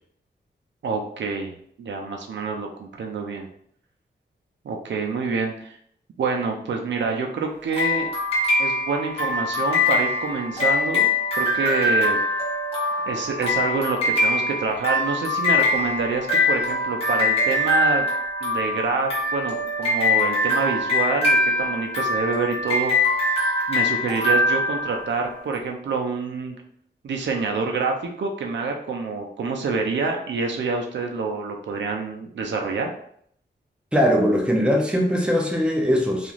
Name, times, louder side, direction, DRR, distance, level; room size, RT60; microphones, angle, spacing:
voice 1, 0.8-1.5 1.8-3.5 4.6-5.7 6.2-8.1 8.6-11.1 11.4-12.2 13.1-18.1 18.4-23.2 23.7-26.6 27.0-32.9, right 4 dB, 80° right, 2 dB, 0.5 m, -27 dB
sound 1, 7.7-25.4, left 2 dB, 30° left, 1.1 m, -23 dB
voice 2, 33.9-36.3, equal, 5° right, 1 dB, 0.5 m, -20 dB
2.9 x 2.4 x 2.4 m, 0.66 s
wide cardioid pair, 115°, 19 cm